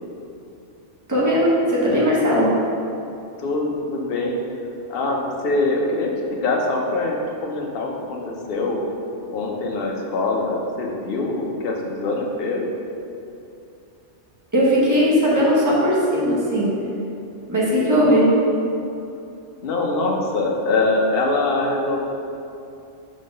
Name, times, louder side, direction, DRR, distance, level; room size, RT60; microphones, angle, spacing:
voice 1, 1.1-2.5 14.5-16.7 17.5-18.3, equal, 15° right, -7 dB, 1.2 m, -18 dB
voice 2, 3.4-4.4 4.9-8.8 9.3-12.6 19.6-22.0, left 2 dB, 55° left, 0 dB, 0.9 m, -23 dB
5.6 x 3.8 x 5.2 m, 2.7 s
omnidirectional pair, 1.2 m